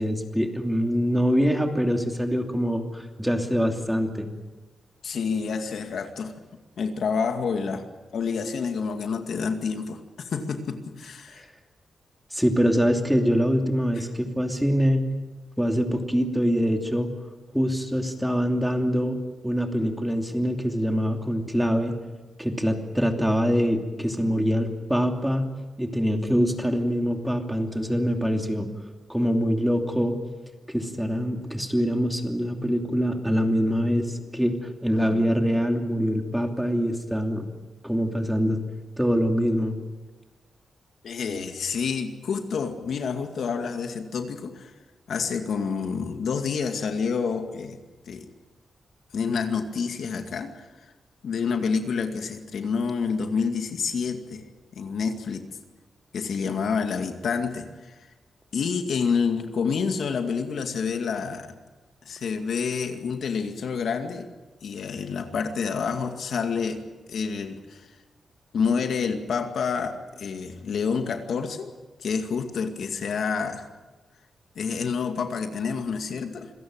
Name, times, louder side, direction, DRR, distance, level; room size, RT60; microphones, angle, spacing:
voice 1, 0.0-4.3 12.3-15.0 15.6-17.1 17.5-19.2 19.4-22.0 22.4-25.5 25.8-28.7 29.1-30.2 30.7-37.5 37.8-38.6 39.0-39.7, equal, ahead, 4 dB, 2.8 m, -24 dB
voice 2, 5.0-6.3 6.8-7.8 8.1-11.4 41.0-44.7 45.1-47.8 48.1-48.3 49.1-50.6 51.2-54.4 54.7-55.5 56.1-57.9 58.5-61.5 62.1-64.3 64.6-66.8 67.1-67.9 68.5-71.7 72.0-73.7 74.6-76.5, left 5 dB, 75° left, 6 dB, 2.2 m, -28 dB
26.5 x 17.0 x 9.0 m, 1.2 s
cardioid pair, 105°, 0 cm